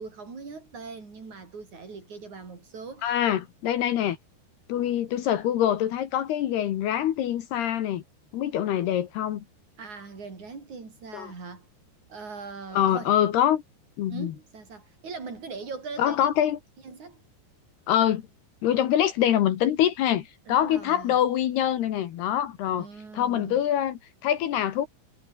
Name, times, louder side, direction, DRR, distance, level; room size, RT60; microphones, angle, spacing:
voice 1, 0.0-3.1 9.8-11.7 12.1-13.1 14.1-16.4 16.8-17.2 18.0-18.2 20.5-21.2 22.8-23.6, right 4 dB, 40° right, 6.6 m, -41 dB
voice 2, 3.0-4.2 4.7-8.0 8.3-9.4 11.1-11.3 12.7-13.6 14.0-14.3 16.0-16.6 17.9-18.2 18.6-22.9 23.1-24.9, left 11 dB, 65° left, 3.3 m, -25 dB
omnidirectional pair, 5.3 m